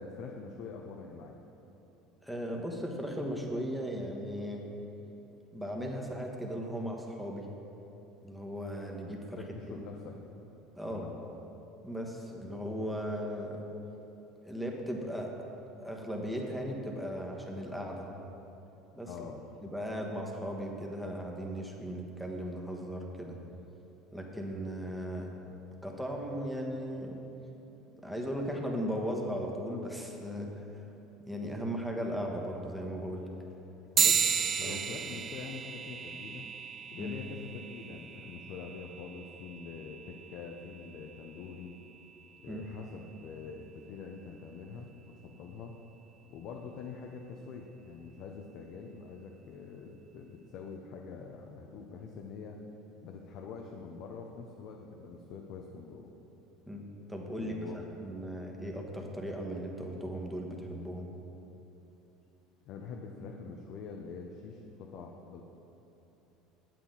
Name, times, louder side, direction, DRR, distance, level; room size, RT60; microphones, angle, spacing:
voice 1, 0.0-1.4 9.4-10.2 10.9-11.2 19.1-19.4 33.9-36.5 36.9-41.8 42.4-45.8 46.3-52.6 53.0-56.1 57.3-57.9 62.7-65.4, left 5 dB, 60° left, 1 dB, 0.6 m, -45 dB
voice 2, 2.2-4.6 5.5-7.5 8.2-9.4 9.8-9.9 10.7-11.1 11.8-13.6 14.4-15.3 15.8-18.1 18.9-19.1 19.6-23.4 24.1-25.3 25.8-27.2 27.9-30.8 31.3-33.3 34.0-34.1 34.6-34.8 37.0-37.2 42.5-42.7 56.7-61.1, equal, ahead, 0 dB, 1.2 m, -37 dB
sound 1, 34.0-43.8, right 7 dB, 40° right, 0.3 m, -35 dB
8.3 x 7.5 x 3.9 m, 3.0 s
hypercardioid pair, 80°, 0 cm